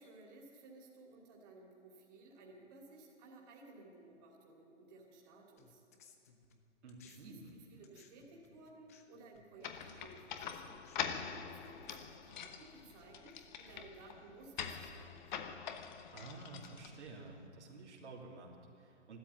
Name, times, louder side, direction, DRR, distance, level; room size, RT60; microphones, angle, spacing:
voice 1, 0.0-5.8 7.0-10.8 11.2-15.5, right 2 dB, 35° right, -1 dB, 2.8 m, -57 dB
sound 1, 5.6-7.2 7.5-13.2, left 5 dB, 15° left, 0.4 m, -66 dB
voice 2, 6.8-7.6 16.1-19.2, right 3 dB, 70° right, -2 dB, 3.0 m, -51 dB
sound 2, 9.6-17.3, left 8 dB, 40° left, 1.0 m, -45 dB
13.5 x 12.5 x 8.2 m, 2.8 s
hypercardioid pair, 150°, 36 cm